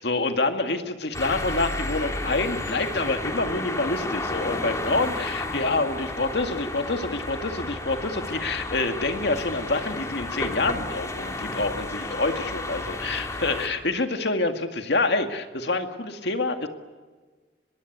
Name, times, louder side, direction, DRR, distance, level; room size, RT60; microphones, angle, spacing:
voice 1, 0.0-16.7, left 3 dB, 70° left, 6 dB, 2.0 m, -27 dB
sound 1, 1.1-13.7, left 2 dB, 15° left, 2.5 m, -32 dB
24.5 x 21.0 x 9.3 m, 1.4 s
head